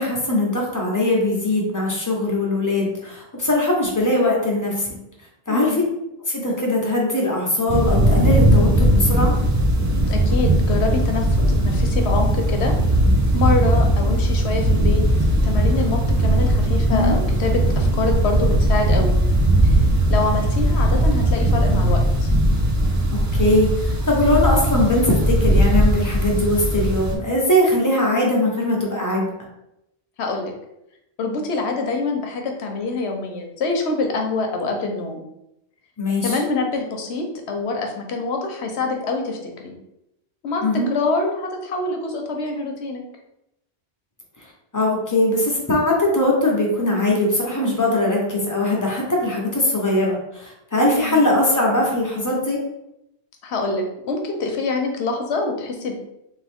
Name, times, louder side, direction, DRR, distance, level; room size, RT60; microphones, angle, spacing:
voice 1, 0.0-4.9 5.5-5.8 6.3-9.3 16.9-17.2 23.1-29.3 36.0-36.4 40.6-40.9 44.7-52.6, left 1 dB, 20° left, -3 dB, 0.9 m, -21 dB
voice 2, 5.5-5.8 10.1-12.8 13.3-15.1 15.4-19.2 19.6-19.7 20.1-22.3 30.2-30.5 31.2-35.2 36.2-39.7 40.4-43.0 50.9-51.2 53.4-56.0, left 3 dB, 80° left, 3 dB, 1.0 m, -25 dB
sound 1, 7.7-27.1, right 1 dB, 25° right, 0.5 m, -18 dB
3.6 x 3.0 x 3.5 m, 0.85 s
omnidirectional pair, 1.1 m